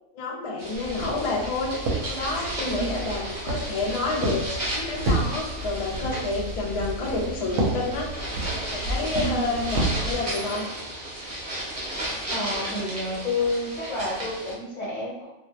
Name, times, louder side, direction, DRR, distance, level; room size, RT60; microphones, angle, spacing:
voice 1, 0.1-4.4 4.7-8.1 8.7-10.6, left 3 dB, 55° left, -3 dB, 0.3 m, -29 dB
sound 1, 0.6-14.5, right 1 dB, 35° right, 0.7 m, -34 dB
Walk footsteps, 0.8-10.1, right 2 dB, 70° right, 0.8 m, -31 dB
voice 2, 9.2-9.5 12.3-15.2, left 1 dB, 40° left, -8 dB, 1.0 m, -29 dB
2.3 x 2.0 x 2.7 m, 0.95 s
omnidirectional pair, 1.3 m